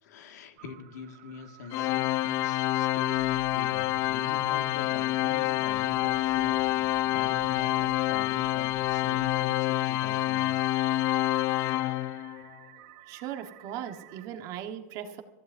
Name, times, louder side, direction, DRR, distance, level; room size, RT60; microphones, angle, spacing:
voice 1, 0.0-10.7, left 5 dB, 80° left, 5 dB, 2.0 m, -44 dB
sound 1, 0.6-14.3, right 8 dB, 55° right, 1.6 m, -53 dB
Organ, 1.7-12.5, left 15 dB, 40° left, 0.4 m, -27 dB
voice 2, 13.1-15.2, right 10 dB, 40° right, 6 dB, 1.4 m, -38 dB
26.0 x 15.0 x 2.7 m, 1.2 s
supercardioid pair, 155°, 9 cm